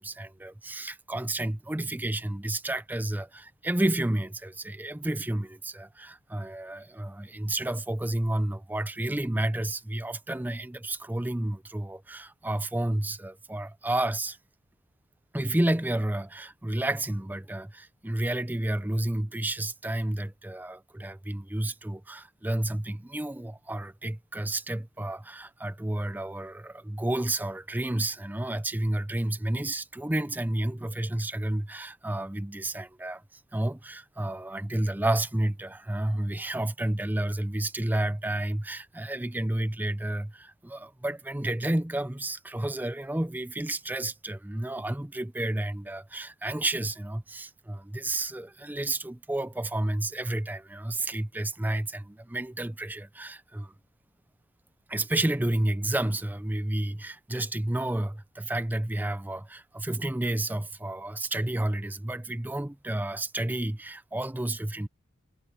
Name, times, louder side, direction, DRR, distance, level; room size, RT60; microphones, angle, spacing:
voice 1, 0.0-14.4 15.3-33.2 33.5-53.7 54.9-64.9, right 1 dB, 10° right, 0.5 m, -31 dB
head